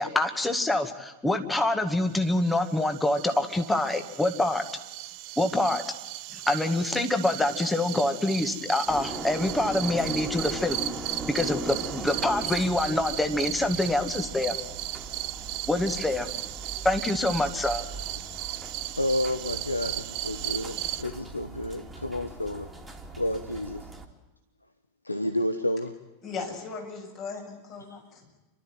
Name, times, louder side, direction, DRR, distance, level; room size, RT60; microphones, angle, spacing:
voice 1, 0.0-4.6 5.4-5.8 6.3-10.8 11.3-14.6 15.7-16.3 16.8-17.8, left 2 dB, 5° left, 7 dB, 2.1 m, -26 dB
sound 1, 2.1-21.0, right 16 dB, 45° right, 0.7 m, -36 dB
sound 2, 8.9-24.1, right 3 dB, 10° right, 2.7 m, -39 dB
voice 2, 19.0-22.7 23.2-23.9 25.0-26.0, left 1 dB, 85° left, 9 dB, 1.1 m, -30 dB
voice 3, 26.2-28.3, left 4 dB, 35° left, 1 dB, 6.9 m, -38 dB
29.5 x 13.0 x 9.2 m, 1.1 s
figure-of-eight pair, 90°, 0 cm